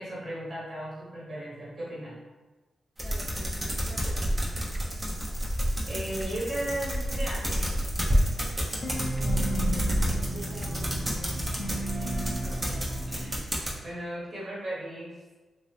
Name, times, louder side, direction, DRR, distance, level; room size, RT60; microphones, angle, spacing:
voice 1, 0.0-2.1 5.8-7.8 12.4-12.8 13.1-13.3 13.8-15.1, right 1 dB, 50° right, -7 dB, 1.4 m, -36 dB
sound 1, 3.0-13.7, equal, 30° right, 0.8 m, -29 dB
voice 2, 3.0-4.5 9.2-9.7 10.2-11.4, right 1 dB, 80° right, -6 dB, 0.8 m, -47 dB
sound 2, 4.7-5.7 6.0-7.2 7.6-7.9 8.4-8.8 9.1-11.0, equal, ahead, 0.3 m, -41 dB
sound 3, 8.8-13.4, right 1 dB, 45° left, 0.6 m, -34 dB
2.9 x 2.6 x 3.2 m, 1.2 s
cardioid pair, 65°, 0 cm